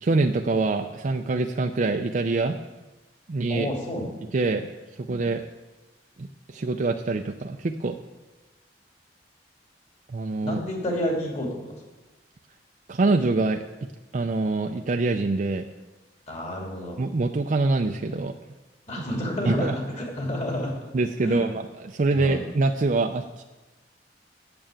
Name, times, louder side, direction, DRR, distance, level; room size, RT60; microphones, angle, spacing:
voice 1, 0.0-2.6 3.3-3.7 4.3-4.7 5.0-5.4 6.2-8.0 10.1-10.6 12.9-13.6 14.1-15.7 17.0-18.3 19.0-19.1 19.4-19.7 20.9-23.4, right 3 dB, 45° right, 4 dB, 0.5 m, -25 dB
voice 2, 3.5-4.1 10.4-11.6 16.3-17.0 18.9-20.7 21.2-21.5 22.1-22.4, left 1 dB, 40° left, -1 dB, 2.7 m, -29 dB
8.9 x 6.9 x 8.8 m, 1.1 s
head